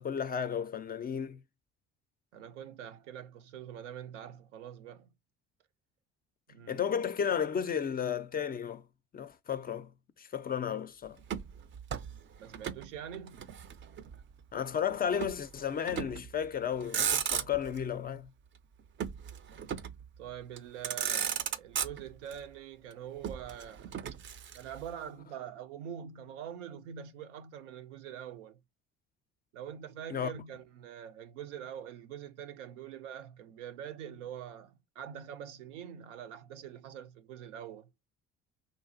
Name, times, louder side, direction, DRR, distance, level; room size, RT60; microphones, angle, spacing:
voice 1, 0.0-1.4 6.7-8.8 9.1-9.9 10.2-11.2 14.5-18.3 30.1-30.3, left 8 dB, 25° left, 0.4 m, -33 dB
voice 2, 2.3-5.1 6.5-6.8 12.4-13.5 20.2-24.0 24.5-28.6 29.5-37.9, right 9 dB, 80° right, 0.6 m, -44 dB
Motor vehicle (road), 11.2-12.9 13.1-14.2 15.2-15.4 15.9-16.3 16.7-17.8 19.0-20.1 20.6-20.7 20.8-22.4 23.2-24.9, right 8 dB, 35° right, 0.4 m, -35 dB
3.1 x 2.3 x 2.5 m
hypercardioid pair, 55°, 35 cm